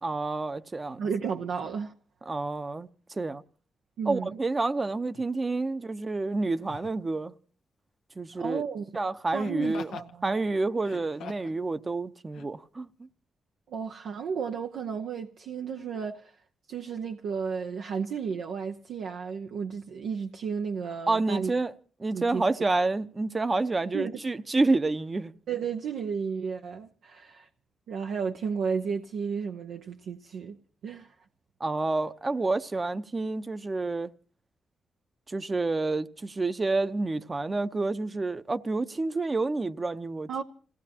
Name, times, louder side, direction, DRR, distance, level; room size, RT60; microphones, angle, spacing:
voice 1, 0.0-1.0 2.3-3.4 4.1-7.3 8.2-8.6 8.9-9.9 10.2-12.9 21.1-21.7 22.0-25.3 31.6-34.1 35.3-40.3, right 3 dB, 30° right, 0.8 m, -29 dB
voice 2, 1.0-1.9 4.0-4.4 8.3-8.8 9.3-10.3 13.7-16.3 16.7-21.5 22.1-22.5 23.9-24.2 25.5-27.5 27.9-30.6 30.8-31.1 40.3-40.4, right 6 dB, 80° right, 0.8 m, -33 dB
Laughter, 5.1-5.3 6.6-7.0 9.4-10.1 10.8-11.6 12.3-12.5, left 7 dB, 85° left, 0.8 m, -43 dB
28.0 x 17.0 x 2.9 m
cardioid pair, 65°, 0 cm